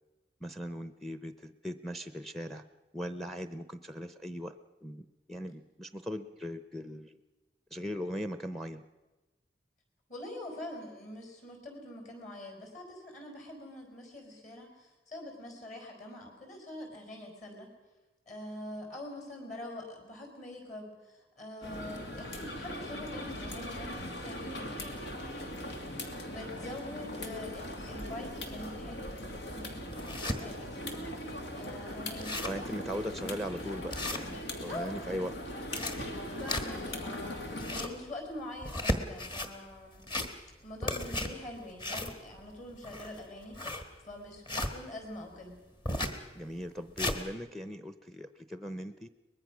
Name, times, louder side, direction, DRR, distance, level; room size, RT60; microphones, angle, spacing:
voice 1, 0.4-2.6 2.9-7.2 7.7-8.8 32.4-35.3 46.3-49.1, equal, ahead, 11 dB, 0.6 m, -39 dB
voice 2, 10.1-17.7 18.3-25.9 26.3-33.1 34.7-34.9 36.3-40.0 40.6-45.6, left 1 dB, 40° left, 3 dB, 4.9 m, -45 dB
sound 1, 21.6-37.9, left 1 dB, 85° left, 2.5 m, -40 dB
sound 2, 29.1-29.2 29.7-30.4 30.9-31.0 31.3-31.4 31.8-31.9 32.1-32.7 33.1-33.2 33.9-34.7 35.5-37.0 37.4-38.0 38.6-39.5 39.9-40.6 40.8-44.7 45.8-46.2 46.6-47.2, left 1 dB, 25° left, 1.5 m, -35 dB
23.5 x 20.5 x 6.2 m, 1.1 s
head